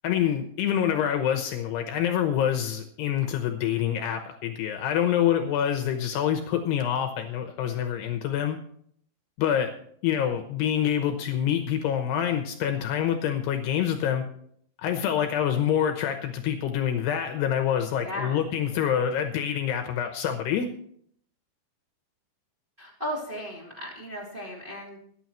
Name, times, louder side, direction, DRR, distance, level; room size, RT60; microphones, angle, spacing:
voice 1, 0.0-8.6 9.4-9.7 10.0-14.2 14.8-20.7, left 9 dB, 75° left, 6 dB, 2.8 m, -26 dB
voice 2, 18.0-18.4 22.8-25.0, equal, 15° right, -3 dB, 2.4 m, -35 dB
24.0 x 9.0 x 3.1 m, 0.64 s
omnidirectional pair, 5.3 m